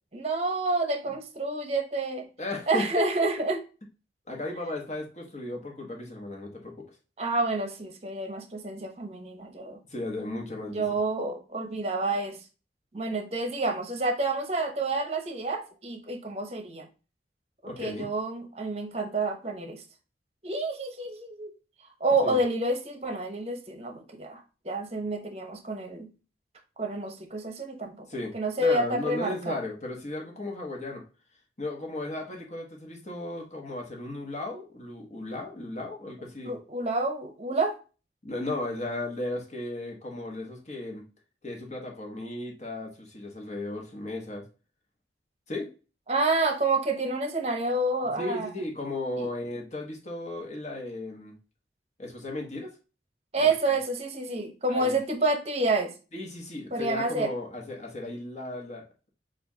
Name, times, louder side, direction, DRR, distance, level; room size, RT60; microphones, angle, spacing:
voice 1, 0.1-2.3 2.7-3.6 7.2-9.8 10.6-12.4 12.9-16.9 17.6-19.8 20.4-21.5 21.8-26.1 26.8-28.1 28.3-29.6 36.4-37.8 46.1-48.5 49.2-49.3 53.3-55.9 56.7-57.3, right 2 dB, 35° right, 5 dB, 0.8 m, -29 dB
voice 2, 2.4-3.1 4.3-6.8 9.9-10.8 17.6-18.1 22.2-22.4 28.1-28.3 28.6-31.0 31.6-36.5 38.2-41.0 41.4-44.4 45.5-45.7 48.2-51.3 52.0-52.7 53.4-53.5 54.7-54.9 56.1-58.8, left 2 dB, 40° left, 0 dB, 1.3 m, -35 dB
6.8 x 2.5 x 2.7 m, 0.33 s
head